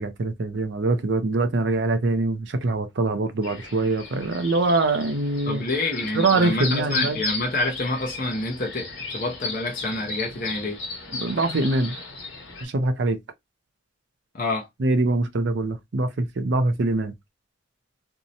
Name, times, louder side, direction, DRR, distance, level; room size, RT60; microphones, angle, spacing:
voice 1, 0.0-5.6 6.1-7.2 11.1-11.9 12.6-13.2 14.8-17.1, right 2 dB, 60° right, 0.5 m, -23 dB
sound 1, 3.4-12.6, left 3 dB, 65° left, 1.1 m, -35 dB
voice 2, 5.5-10.8 14.3-14.7, left 2 dB, 45° left, 0.6 m, -27 dB
2.6 x 2.1 x 2.6 m
head